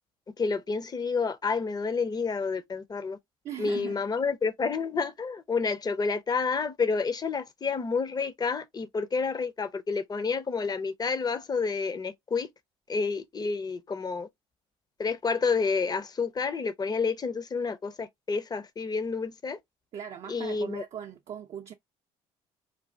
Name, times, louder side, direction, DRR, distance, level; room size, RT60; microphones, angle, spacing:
voice 1, 0.4-3.2 3.6-12.5 12.9-14.3 15.0-19.6 20.3-20.8, left 4 dB, 25° left, 0.6 m, -29 dB
voice 2, 3.4-4.0 19.9-21.7, right 9 dB, 45° right, 0.5 m, -39 dB
3.2 x 2.2 x 2.6 m
hypercardioid pair, 60°, 14 cm